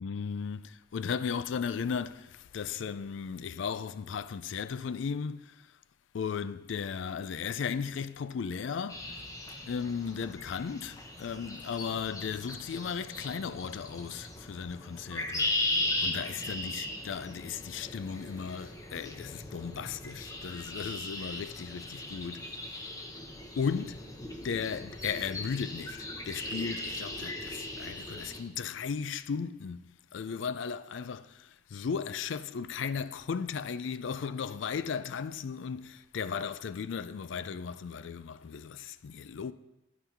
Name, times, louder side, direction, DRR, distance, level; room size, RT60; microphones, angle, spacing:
voice 1, 0.0-5.6 6.1-9.2 9.6-22.5 23.6-24.0 24.4-39.5, left 6 dB, 65° left, 0.4 m, -36 dB
sound 1, 8.9-28.4, left 2 dB, 15° left, 0.8 m, -38 dB
10.0 x 5.7 x 4.6 m
head